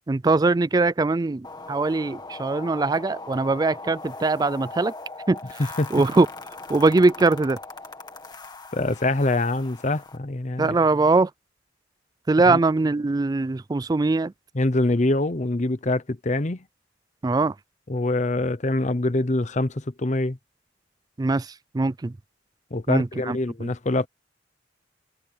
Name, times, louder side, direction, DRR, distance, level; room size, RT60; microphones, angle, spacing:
voice 1, 0.1-4.9 5.3-5.4 5.9-6.3 6.7-7.6 10.6-11.3 12.3-14.3 17.2-17.5 21.2-21.5 21.7-22.1 22.9-23.7, right 3 dB, 20° right, 0.3 m, -21 dB
sound 1, 1.4-10.2, left 3 dB, 25° left, 2.1 m, -40 dB
voice 2, 8.7-10.7 12.5-12.6 14.5-16.6 17.9-20.4 22.7-24.1, left 2 dB, 40° left, 0.8 m, -24 dB
head